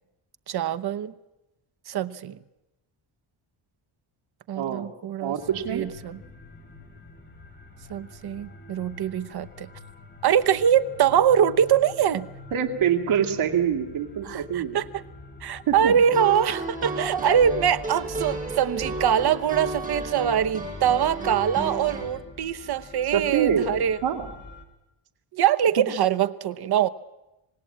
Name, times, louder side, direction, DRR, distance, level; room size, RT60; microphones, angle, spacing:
voice 1, 0.5-1.1 1.9-2.4 4.5-5.3 5.7-6.2 7.9-9.7 10.2-12.3 14.2-15.0 15.4-24.0 25.3-26.9, right 9 dB, 50° right, 0.9 m, -23 dB
voice 2, 4.5-4.9 5.2-5.9 12.5-14.8 15.7-15.9 23.1-23.7 24.0-24.3 25.8-25.9, right 8 dB, 75° right, 2.5 m, -25 dB
sound 1, 5.4-24.6, left 2 dB, 20° left, 2.7 m, -45 dB
sound 2, 15.9-22.0, right 2 dB, 15° right, 5.6 m, -33 dB
26.5 x 19.0 x 8.6 m
wide cardioid pair, 175°, 49 cm